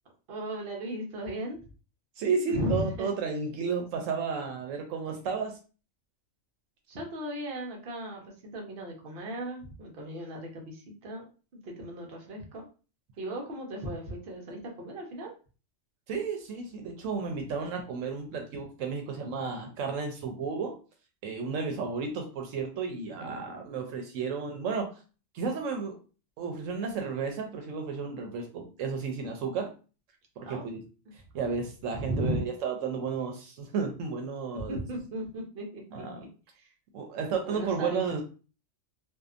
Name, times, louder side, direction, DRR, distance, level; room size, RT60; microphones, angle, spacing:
voice 1, 0.3-1.6 2.5-3.1 6.9-11.2 11.6-12.7 13.2-15.3 30.4-30.6 31.9-32.4 34.5-36.1 36.6-36.7 37.5-38.2, equal, 55° right, 0 dB, 0.9 m, -36 dB
voice 2, 2.2-5.6 16.1-20.7 21.2-24.9 25.3-26.0 26.4-29.7 30.4-30.8 31.3-34.8 35.9-36.2 36.9-38.2, right 5 dB, 85° right, 3 dB, 1.0 m, -32 dB
2.7 x 2.2 x 2.4 m, 0.35 s
omnidirectional pair, 1.3 m